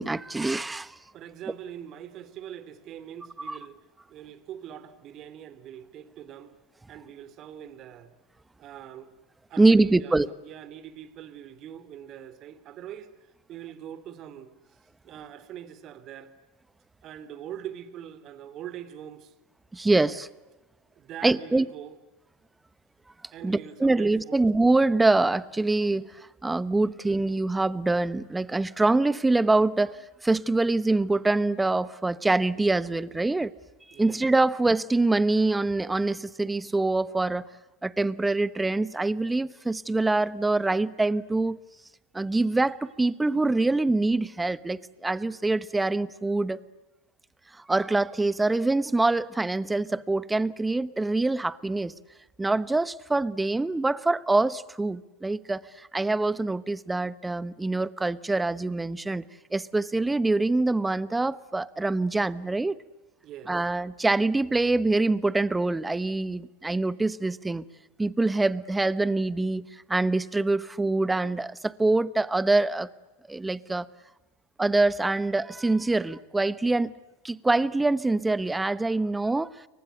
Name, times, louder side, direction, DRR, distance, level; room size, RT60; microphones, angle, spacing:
voice 1, 0.0-1.0 3.5-3.6 9.6-10.3 19.7-20.3 21.2-21.7 23.4-33.5 34.0-37.4 37.8-41.6 42.1-46.6 47.7-51.9 52.4-59.2 59.5-62.8 63.5-67.6 68.0-72.9 73.3-73.9 74.6-76.9 77.2-79.5, right 2 dB, 10° right, 1.0 m, -25 dB
voice 2, 1.1-3.8 4.1-6.5 6.9-8.1 8.6-9.1 9.5-14.8 15.0-16.3 17.0-19.3 20.9-22.0 23.3-24.4 33.9-34.2 63.2-63.6, right 10 dB, 40° right, 2.9 m, -43 dB
30.0 x 24.0 x 8.0 m
figure-of-eight pair, 85°, 0 cm